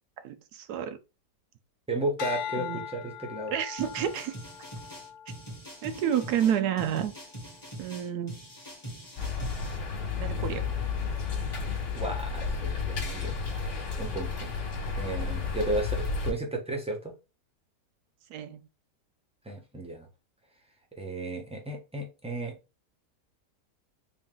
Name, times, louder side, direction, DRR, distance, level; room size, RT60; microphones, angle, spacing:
voice 1, 0.2-1.0 2.6-2.8 3.5-4.3 5.8-7.1 7.8-8.4 10.2-10.7 18.3-18.6, right 9 dB, 75° right, 1.1 m, -30 dB
voice 2, 1.9-3.5 11.9-13.3 14.0-14.5 15.0-17.1 19.4-20.1 20.9-22.6, right 2 dB, 5° right, 0.6 m, -34 dB
sound 1, 2.2-6.6 7.2-7.6, left 9 dB, 75° left, 1.1 m, -40 dB
sound 2, 3.8-9.8, right 1 dB, 15° left, 1.0 m, -43 dB
sound 3, 9.2-16.3, left 5 dB, 50° left, 1.4 m, -32 dB
3.9 x 2.5 x 3.7 m
omnidirectional pair, 1.8 m